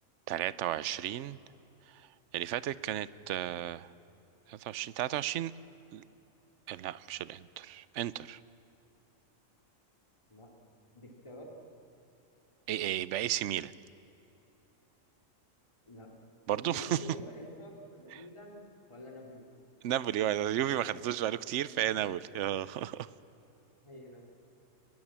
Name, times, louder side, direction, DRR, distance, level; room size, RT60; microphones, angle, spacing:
voice 1, 0.3-1.4 2.3-3.9 4.5-5.5 5.9-6.0 6.7-8.4 12.7-13.7 16.5-17.0 19.8-23.1, right 12 dB, 65° right, 18 dB, 0.9 m, -33 dB
voice 2, 10.9-11.5 15.9-16.1 16.6-18.6 18.9-19.4 20.6-21.2 21.8-22.2 23.8-24.3, left 1 dB, 20° left, 0 dB, 2.9 m, -48 dB
24.0 x 21.0 x 7.4 m, 3.0 s
omnidirectional pair, 1.4 m